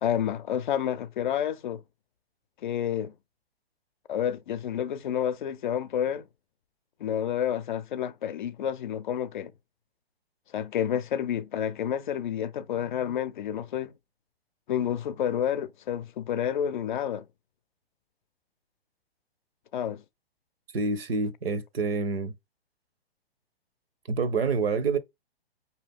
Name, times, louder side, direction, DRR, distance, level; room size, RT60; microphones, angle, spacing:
voice 1, 0.0-1.8 2.6-3.1 4.1-6.2 7.0-9.5 10.5-13.9 14.7-17.2 19.7-20.0, left 9 dB, 50° left, 0.6 m, -29 dB
voice 2, 20.7-22.3 24.1-25.0, right 4 dB, 70° right, 0.9 m, -27 dB
5.2 x 2.8 x 3.5 m
figure-of-eight pair, 125°, 31 cm